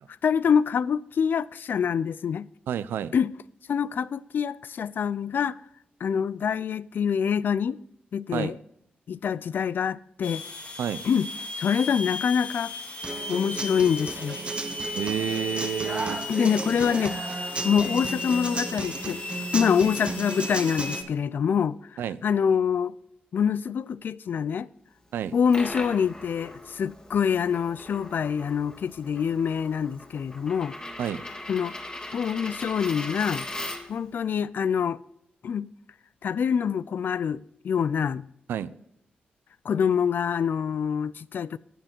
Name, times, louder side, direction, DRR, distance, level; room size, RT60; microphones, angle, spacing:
voice 1, 0.2-2.5 3.1-3.3 3.7-5.6 6.0-7.8 8.1-8.6 9.1-10.4 11.0-11.3 11.6-12.7 13.3-14.4 16.3-19.2 19.5-21.8 22.2-22.9 23.3-24.7 25.3-30.8 31.5-31.8 32.1-33.5 33.9-35.0 35.4-35.7 36.2-38.3 39.6-41.6, left 7 dB, 65° left, 0.4 m, -25 dB
voice 2, 2.7-3.1 8.3-8.5 10.8-11.0 14.9-16.2 22.0-22.2 25.1-25.3 31.0-31.2 38.5-38.7, right 9 dB, 90° right, 0.5 m, -29 dB
sound 1, 10.2-21.0, left 3 dB, 45° left, 2.0 m, -36 dB
Human voice / Acoustic guitar, 13.0-21.0, right 3 dB, 30° right, 1.2 m, -34 dB
Coin (dropping), 25.2-34.1, left 1 dB, 25° left, 1.9 m, -39 dB
11.5 x 7.6 x 4.5 m
cardioid pair, 65°, 4 cm